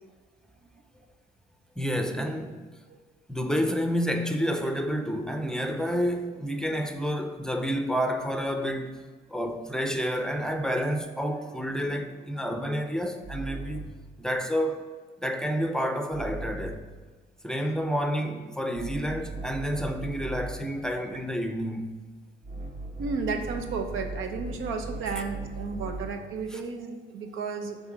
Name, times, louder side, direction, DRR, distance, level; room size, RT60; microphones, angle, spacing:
voice 1, 1.8-2.6 3.3-9.0 9.3-13.8 14.2-14.8 15.2-16.8 17.4-22.0 26.5-26.6, equal, 5° left, 0.5 m, -29 dB
sound 1, 11.3-14.1 16.1-16.9 17.8-20.8 22.4-26.3, right 2 dB, 45° right, 1.2 m, -39 dB
voice 2, 23.0-27.8, right 4 dB, 90° right, 0.8 m, -33 dB
5.6 x 3.9 x 6.0 m
cardioid pair, 90°, 20 cm